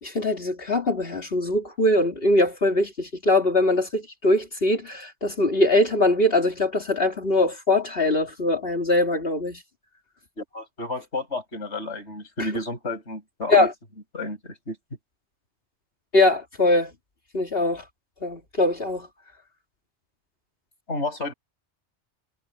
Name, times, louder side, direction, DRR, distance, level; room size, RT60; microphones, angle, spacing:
voice 1, 0.0-9.6 13.5-13.7 16.1-16.9 17.3-17.8 18.2-19.1, left 2 dB, 60° left, 2.6 m, -22 dB
voice 2, 10.4-13.7 14.1-14.8 20.9-21.3, left 2 dB, 90° left, 7.2 m, -31 dB
omnidirectional pair, 1.1 m